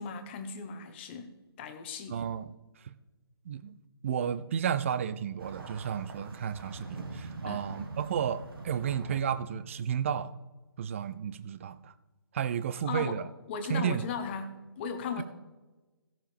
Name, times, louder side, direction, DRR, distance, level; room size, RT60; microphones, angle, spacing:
voice 1, 0.0-2.2 7.5-7.7 12.8-13.2 13.5-15.2, left 5 dB, 25° left, 1.0 m, -37 dB
voice 2, 2.1-2.5 2.8-3.0 3.5-3.8 4.0-10.3 10.8-11.9 12.3-13.2 13.7-14.0 15.2-15.3, right 8 dB, 30° right, 0.5 m, -32 dB
sound 1, 5.4-9.2, right 2 dB, 65° right, 1.8 m, -43 dB
16.0 x 7.3 x 3.5 m
figure-of-eight pair, 145°, 13 cm